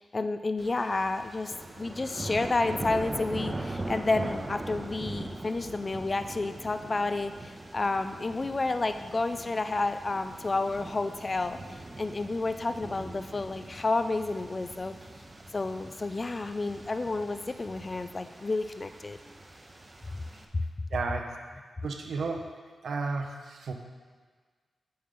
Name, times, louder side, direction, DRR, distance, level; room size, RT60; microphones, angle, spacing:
voice 1, 0.0-15.0 15.5-19.2 20.5-20.6, left 3 dB, 30° left, 9 dB, 0.4 m, -30 dB
sound 1, 0.6-20.4, right 2 dB, 25° right, 0.7 m, -41 dB
voice 2, 20.9-21.4 21.8-22.6 22.8-23.7, right 4 dB, 75° right, 3 dB, 0.7 m, -33 dB
8.5 x 7.7 x 3.7 m, 1.5 s
wide cardioid pair, 130°, 0 cm